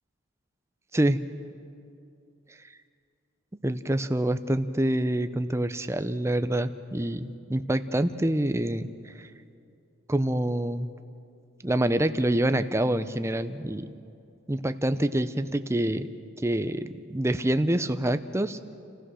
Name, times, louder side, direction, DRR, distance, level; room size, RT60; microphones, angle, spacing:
voice 1, 3.6-9.3 10.1-10.9 11.6-13.9 14.5-16.1 16.4-18.6, right 1 dB, 15° right, 11 dB, 0.6 m, -26 dB
29.5 x 15.5 x 6.3 m, 2.5 s
head